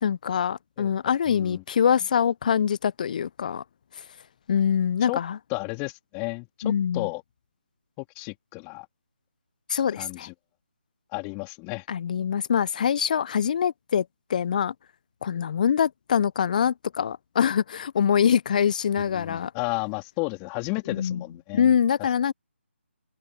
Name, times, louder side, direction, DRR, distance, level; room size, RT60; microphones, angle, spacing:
voice 1, 0.0-3.6 4.5-5.4 6.6-7.1 9.7-10.3 11.9-14.0 14.3-14.7 15.2-19.5 20.9-21.2 21.5-22.3, left 8 dB, 40° left, 0.7 m, -24 dB
voice 2, 1.3-1.6 5.0-5.2 5.5-7.2 8.0-8.9 10.0-10.3 11.1-11.8 19.0-21.7, left 34 dB, 20° left, 3.2 m, -33 dB
open air
figure-of-eight pair, 150°, 7 cm